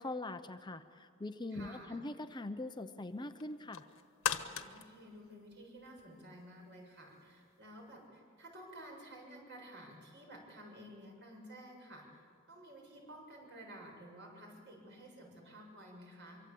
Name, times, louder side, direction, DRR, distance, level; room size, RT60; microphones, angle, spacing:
voice 1, 0.0-3.9, left 2 dB, 20° left, 8 dB, 0.7 m, -42 dB
voice 2, 1.5-2.0 4.4-16.4, right 1 dB, 55° right, 1 dB, 7.1 m, -53 dB
sound 1, 3.4-6.2 6.6-6.7, left 7 dB, 70° left, 1.4 m, -39 dB
24.5 x 24.5 x 8.5 m, 2.2 s
head